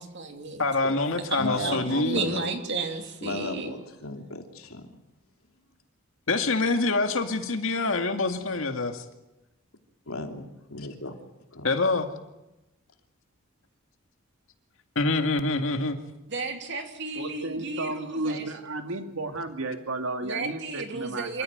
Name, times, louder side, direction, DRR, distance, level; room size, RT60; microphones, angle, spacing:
voice 1, 0.0-0.6 1.3-3.8 16.3-18.5 20.2-21.4, right 3 dB, 55° right, 5 dB, 3.0 m, -33 dB
voice 2, 0.6-2.2 6.3-9.0 11.6-12.1 15.0-16.0, left 3 dB, 65° left, 6 dB, 2.2 m, -25 dB
voice 3, 1.4-1.9 2.1-2.5 3.2-4.8 10.1-11.1 11.5-11.7, left 2 dB, 85° left, 4 dB, 3.0 m, -35 dB
voice 4, 17.2-21.4, right 2 dB, 75° right, 6 dB, 2.2 m, -33 dB
27.0 x 14.0 x 9.3 m, 0.95 s
head